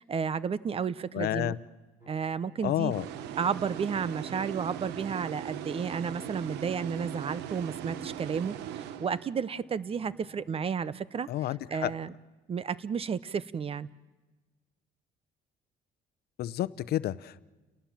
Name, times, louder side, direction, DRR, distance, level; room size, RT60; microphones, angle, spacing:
voice 1, 0.0-1.6 2.1-2.9 3.4-11.3 11.7-12.1 12.5-13.9, right 6 dB, 35° right, 18 dB, 0.8 m, -32 dB
voice 2, 1.1-1.6 2.6-3.0 11.3-11.9 16.4-17.4, left 13 dB, 70° left, 17 dB, 0.8 m, -30 dB
sound 1, 2.0-10.4, right 1 dB, 15° right, 6.8 m, -49 dB
sound 2, 2.9-9.6, right 12 dB, 90° right, 0.9 m, -40 dB
30.0 x 18.5 x 7.4 m, 1.2 s
cardioid pair, 110°, 17 cm